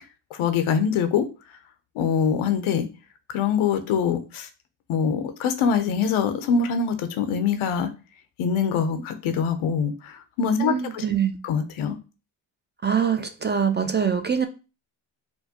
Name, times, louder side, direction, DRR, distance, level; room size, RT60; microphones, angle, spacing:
voice 1, 0.3-1.3 2.0-2.9 3.3-4.5 4.9-7.9 8.4-11.0 11.4-12.0, left 6 dB, 85° left, 9 dB, 0.7 m, -24 dB
voice 2, 10.6-11.4 12.8-14.5, right 7 dB, 25° right, 8 dB, 0.4 m, -24 dB
4.4 x 2.2 x 2.8 m, 0.32 s
supercardioid pair, 55°, 48 cm